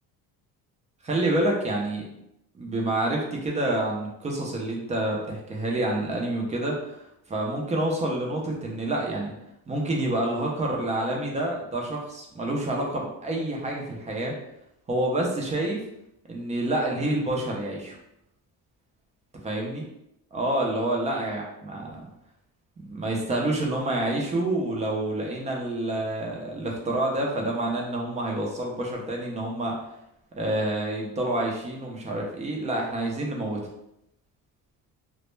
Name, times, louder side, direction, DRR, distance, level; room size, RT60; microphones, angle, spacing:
voice 1, 1.0-2.1 2.5-9.3 9.7-14.3 14.9-15.8 16.3-18.0 19.4-19.8 20.3-22.0 22.8-29.8 30.4-33.6, right 1 dB, 20° right, -1 dB, 0.4 m, -28 dB
2.1 x 2.1 x 3.0 m, 0.80 s
cardioid pair, 140°, 38 cm